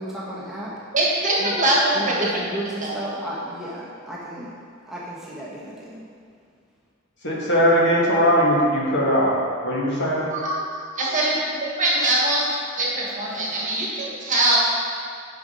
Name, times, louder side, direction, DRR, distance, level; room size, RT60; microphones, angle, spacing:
voice 1, 0.0-0.8 1.4-1.6 1.9-4.6 4.9-6.1, right 1 dB, ahead, -7 dB, 1.0 m, -33 dB
voice 2, 0.9-2.4 2.8-3.2 10.3-10.7 11.0-11.3 11.6-12.4 12.8-14.6, right 1 dB, 40° right, -4 dB, 1.5 m, -22 dB
voice 3, 7.2-9.3 9.6-10.2, equal, 60° left, -5 dB, 1.6 m, -19 dB
6.7 x 5.1 x 5.4 m, 2.1 s
head